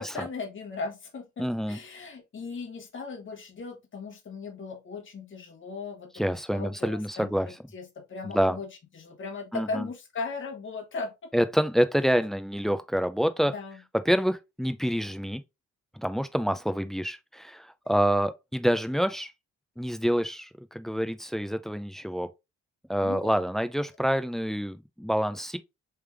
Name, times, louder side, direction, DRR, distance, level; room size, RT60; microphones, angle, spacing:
voice 1, 0.0-11.3 13.4-13.8 23.0-23.3, left 4 dB, 40° left, 1.3 m, -38 dB
voice 2, 1.4-1.8 6.2-7.5 8.2-8.6 9.5-9.9 11.3-13.5 14.1-15.4 16.0-19.3 19.8-22.3 22.9-25.6, equal, ahead, 0.4 m, -27 dB
3.4 x 3.3 x 3.3 m
cardioid pair, 90°, 30 cm